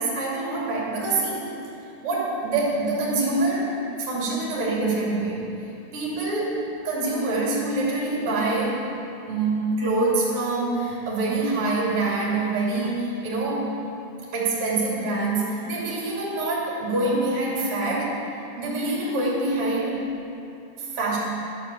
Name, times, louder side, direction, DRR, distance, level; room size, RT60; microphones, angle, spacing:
voice 1, 0.0-1.4 2.0-3.7 4.0-5.4 5.9-6.5 6.8-8.8 9.3-13.7 14.3-18.2 18.6-20.0 20.8-21.2, right 2 dB, 35° right, -5 dB, 2.7 m, -25 dB
12.0 x 8.9 x 7.5 m, 2.7 s
omnidirectional pair, 5.8 m